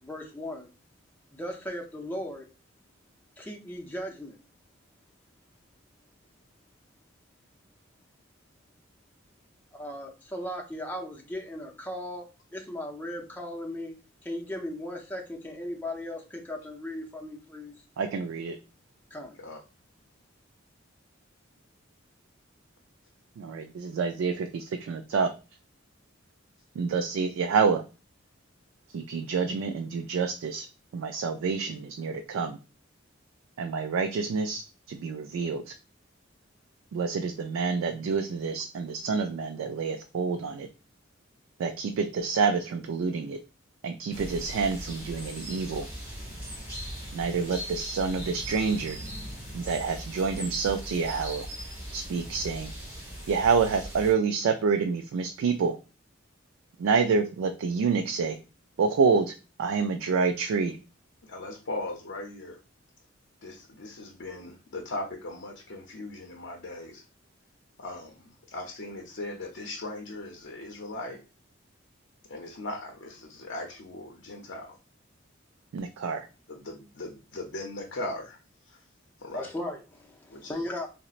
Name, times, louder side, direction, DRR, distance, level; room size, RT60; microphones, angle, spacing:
voice 1, 0.0-0.7 1.3-2.5 3.4-4.4 9.7-14.0 14.2-17.8 19.1-19.4 79.3-80.9, left 1 dB, 10° left, 0.5 m, -37 dB
voice 2, 18.0-18.6 23.4-25.3 26.8-27.8 28.9-30.7 30.9-32.6 33.6-34.6 34.9-35.7 36.9-40.7 41.6-43.4 43.8-45.9 47.1-49.0 49.5-51.5 51.9-52.7 53.3-55.8 56.8-58.4 58.8-59.3 59.6-60.8 75.7-76.3, right 5 dB, 85° right, 0.3 m, -27 dB
sound 1, 44.1-54.1, equal, 10° right, 1.4 m, -39 dB
voice 3, 61.2-62.6 63.4-67.0 67.8-71.2 72.3-74.8 76.5-78.4 78.7-78.8 79.2-79.5 80.3-80.6, left 2 dB, 65° left, 0.6 m, -39 dB
3.9 x 2.0 x 2.4 m
head